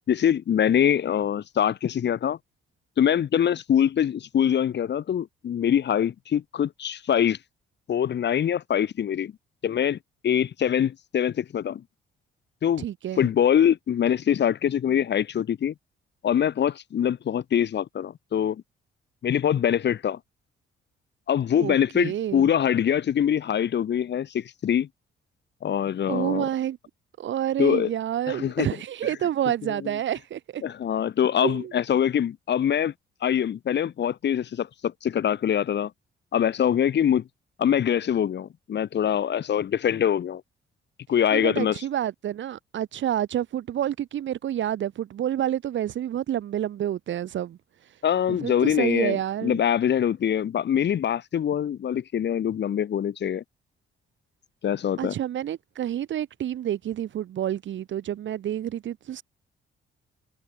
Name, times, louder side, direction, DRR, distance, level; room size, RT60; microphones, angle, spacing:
voice 1, 0.1-2.4 3.0-7.4 7.9-9.3 9.6-10.0 10.2-11.8 12.6-12.8 13.2-15.7 16.2-18.6 19.2-20.2 21.3-24.9 25.6-26.4 27.6-27.9 28.3-28.7 30.6-32.9 33.2-35.9 36.3-37.2 37.6-40.4 41.1-41.8 48.0-53.4 54.6-55.1, left 9 dB, 60° left, 5.9 m, -24 dB
voice 2, 12.8-13.3 21.6-22.5 26.0-26.8 27.2-30.6 31.4-31.7 41.3-48.0 48.3-49.6 55.0-59.2, right 11 dB, 70° right, 7.0 m, -29 dB
cardioid pair, 90°, 20 cm